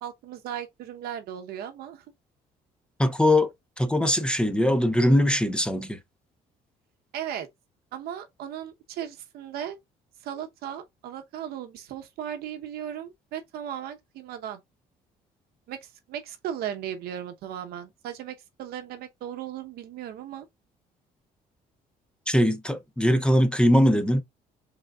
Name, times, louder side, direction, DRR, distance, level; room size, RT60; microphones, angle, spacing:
voice 1, 0.0-2.0 7.1-7.5 7.9-9.8 10.2-14.6 15.7-20.5, right 10 dB, 80° right, 0.9 m, -36 dB
voice 2, 3.0-6.0 22.3-24.2, left 1 dB, 5° left, 0.5 m, -21 dB
5.0 x 3.4 x 2.3 m
cardioid pair, 125°, 16 cm